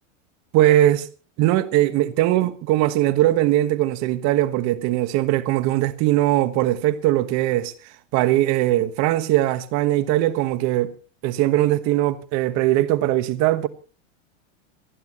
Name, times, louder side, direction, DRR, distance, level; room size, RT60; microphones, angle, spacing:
voice 1, 0.5-1.1 1.4-7.7 8.1-10.9 11.2-13.7, right 14 dB, 45° right, 1.4 m, -20 dB
28.0 x 11.0 x 3.0 m
supercardioid pair, 125°, 37 cm